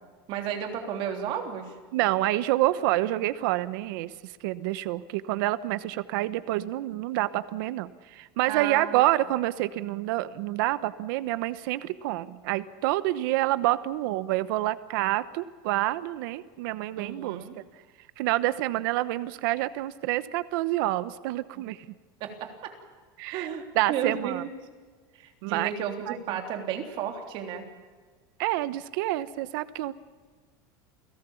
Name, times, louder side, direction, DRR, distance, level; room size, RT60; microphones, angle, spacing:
voice 1, 0.3-1.7 8.5-9.0 17.0-17.6 21.5-21.6 22.2-22.7 23.2-24.5 25.2-27.6, right 8 dB, 45° right, 4 dB, 3.4 m, -33 dB
voice 2, 1.9-4.1 4.4-17.4 18.2-21.9 23.2-23.5 23.7-24.4 25.4-25.7 26.1-26.2 28.4-29.9, right 16 dB, 65° right, 14 dB, 1.0 m, -28 dB
29.5 x 17.5 x 7.1 m, 1.5 s
supercardioid pair, 165°, 12 cm